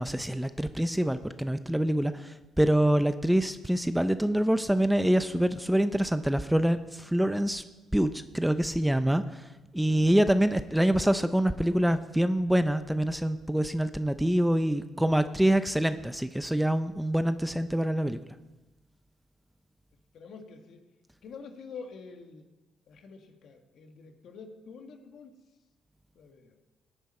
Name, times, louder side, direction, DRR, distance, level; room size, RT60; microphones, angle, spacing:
voice 1, 0.0-7.6 7.9-9.4 9.7-18.2, right 1 dB, 5° right, 11 dB, 0.6 m, -25 dB
voice 2, 20.1-20.8 21.2-22.5 22.9-25.3 26.1-26.5, left 5 dB, 70° left, 4 dB, 1.8 m, -46 dB
17.5 x 10.0 x 4.4 m, 1.1 s
cardioid pair, 90°, 0 cm